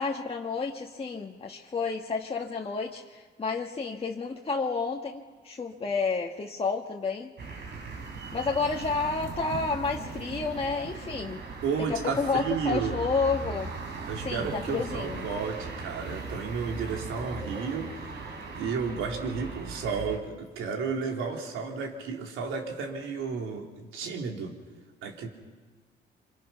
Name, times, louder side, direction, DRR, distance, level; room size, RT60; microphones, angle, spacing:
voice 1, 0.0-7.3 8.3-11.4 12.0-13.7 14.2-15.3, left 4 dB, 30° left, -1 dB, 1.6 m, -30 dB
sound 1, 7.4-20.2, right 4 dB, 60° right, 3.8 m, -39 dB
voice 2, 11.6-13.0 14.1-24.5 25.0-25.3, right 5 dB, 85° right, 2 dB, 3.4 m, -32 dB
27.0 x 25.5 x 5.9 m, 1.4 s
cardioid pair, 90°, 20 cm